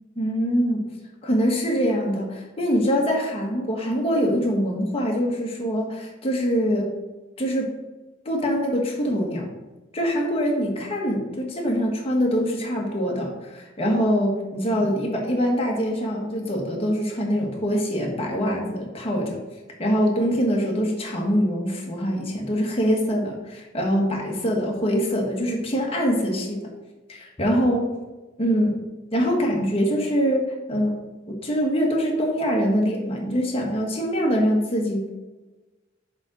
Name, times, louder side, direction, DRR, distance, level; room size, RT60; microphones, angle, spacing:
voice 1, 0.2-0.9 1.2-7.0 7.4-7.8 8.2-9.5 9.9-19.4 19.8-26.7 27.1-28.0 28.4-35.1, equal, 30° left, -1 dB, 1.6 m, -24 dB
7.4 x 3.9 x 6.3 m, 1.2 s
head